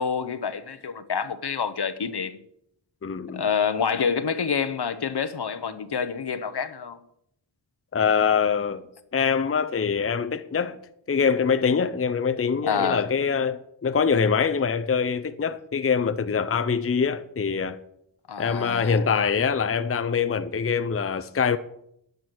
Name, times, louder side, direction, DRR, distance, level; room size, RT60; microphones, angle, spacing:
voice 1, 0.0-2.4 3.3-7.0 12.6-13.0 18.3-19.0, left 6 dB, 60° left, 1.0 m, -27 dB
voice 2, 3.0-3.4 7.9-8.8 9.1-10.8 11.1-17.8 18.4-21.6, left 6 dB, 30° left, 0.6 m, -24 dB
10.0 x 9.2 x 6.2 m
wide cardioid pair, 75°, 44 cm